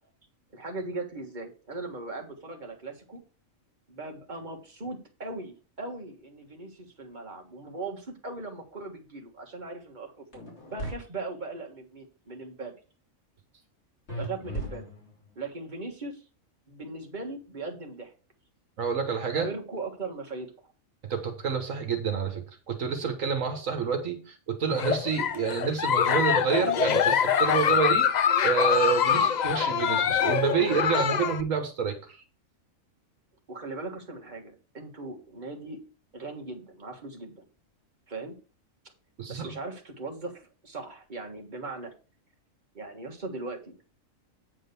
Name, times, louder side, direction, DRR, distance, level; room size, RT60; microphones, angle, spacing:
voice 1, 0.5-3.2 3.9-12.7 14.2-14.8 15.4-16.2 16.7-18.1 19.3-20.5 29.1-29.2 33.5-35.8 36.1-37.4 38.1-38.3 39.3-41.9 42.7-43.9, right 3 dB, 35° right, 2 dB, 1.6 m, -39 dB
sound 1, 10.3-10.9 14.1-15.3, right 1 dB, 50° left, 3.6 m, -36 dB
voice 2, 18.8-19.5 21.1-28.1 28.4-32.2 39.2-39.6, right 6 dB, 70° right, 6 dB, 1.5 m, -28 dB
Giggle, 24.7-31.4, left 8 dB, 80° left, 0.3 m, -24 dB
8.9 x 3.8 x 6.8 m, 0.36 s
omnidirectional pair, 1.4 m